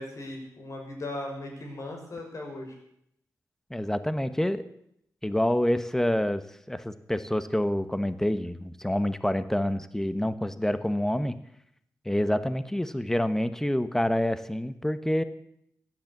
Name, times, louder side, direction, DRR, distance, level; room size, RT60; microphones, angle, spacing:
voice 1, 0.0-2.8, left 1 dB, 55° left, 1 dB, 6.3 m, -38 dB
voice 2, 3.7-4.6 5.2-11.4 12.0-15.2, left 1 dB, 5° left, 12 dB, 1.1 m, -27 dB
16.0 x 10.5 x 7.3 m, 0.74 s
cardioid pair, 80°, 6 cm